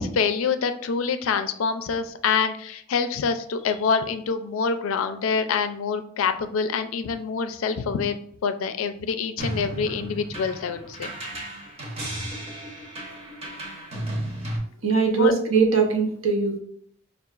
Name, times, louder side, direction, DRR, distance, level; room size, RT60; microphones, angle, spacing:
voice 1, 0.0-8.2 8.4-11.1 15.2-15.3, left 5 dB, 90° left, 9 dB, 0.4 m, -26 dB
sound 1, 9.4-14.6, right 1 dB, 30° right, 0.7 m, -34 dB
voice 2, 14.8-16.6, right 5 dB, 85° right, 3 dB, 0.7 m, -21 dB
5.4 x 2.3 x 2.3 m, 0.65 s
head